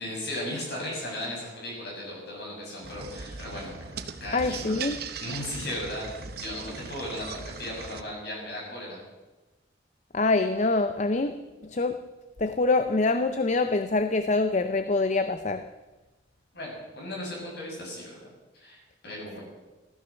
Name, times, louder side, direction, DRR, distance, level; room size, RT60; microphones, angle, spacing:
voice 1, 0.0-4.9 5.2-9.0 16.5-18.1 18.6-19.4, left 1 dB, 55° left, 7.4 m, -36 dB
sound 1, 2.8-8.0, right 5 dB, 55° right, 1.0 m, -39 dB
voice 2, 4.3-5.0 10.1-12.0 12.4-15.7, left 3 dB, 40° left, 0.6 m, -25 dB
15.5 x 14.0 x 6.3 m
head